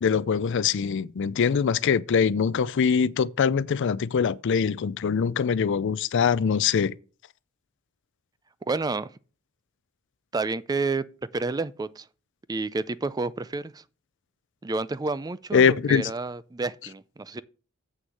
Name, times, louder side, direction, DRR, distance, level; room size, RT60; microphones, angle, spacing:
voice 1, 0.0-6.9 15.5-16.0, left 6 dB, 60° left, 0.4 m, -23 dB
voice 2, 8.7-9.1 10.3-11.0 11.3-12.1 12.5-13.8 14.6-17.4, right 3 dB, 20° right, 0.4 m, -30 dB
7.9 x 6.3 x 6.5 m
head